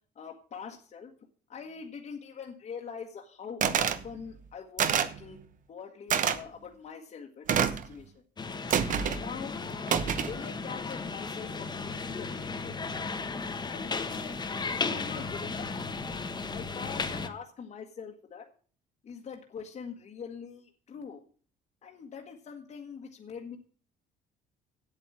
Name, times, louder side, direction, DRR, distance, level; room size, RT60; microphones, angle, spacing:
voice 1, 0.1-1.1 1.5-8.2 9.1-12.9 13.7-15.7 16.5-18.5 19.0-21.2 21.8-23.6, left 6 dB, 45° left, 1 dB, 1.5 m, -43 dB
sound 1, 3.6-4.0 4.8-5.2 6.1-6.4 7.5-7.9 8.7-9.2 9.9-10.3, right 8 dB, 50° right, 1.1 m, -26 dB
sound 2, 8.4-17.3, left 4 dB, 25° left, 1.2 m, -35 dB
8.5 x 8.1 x 7.5 m, 0.42 s
cardioid pair, 110°, 17 cm